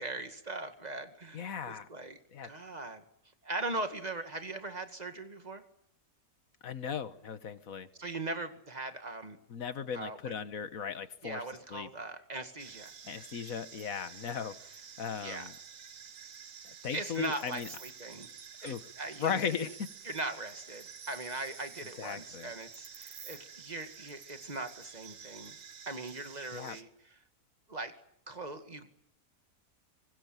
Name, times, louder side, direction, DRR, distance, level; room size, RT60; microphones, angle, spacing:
voice 1, 0.0-3.0 3.4-5.6 8.0-9.4 9.9-10.3 11.2-12.9 15.2-15.5 16.9-18.3 18.6-19.7 20.0-25.6 25.9-27.2 27.7-27.9 28.3-28.9, right 2 dB, 25° right, 7 dB, 2.2 m, -40 dB
voice 2, 1.3-1.9 2.3-2.5 6.6-7.9 9.5-11.4 11.7-11.9 13.0-15.5 16.6-17.7 18.6-18.8 19.2-19.9 22.0-22.5 26.5-26.8, left 7 dB, 65° left, 12 dB, 1.7 m, -37 dB
sound 1, 12.6-26.8, right 7 dB, 60° right, 1.6 m, -50 dB
25.0 x 21.0 x 9.1 m, 0.73 s
omnidirectional pair, 1.6 m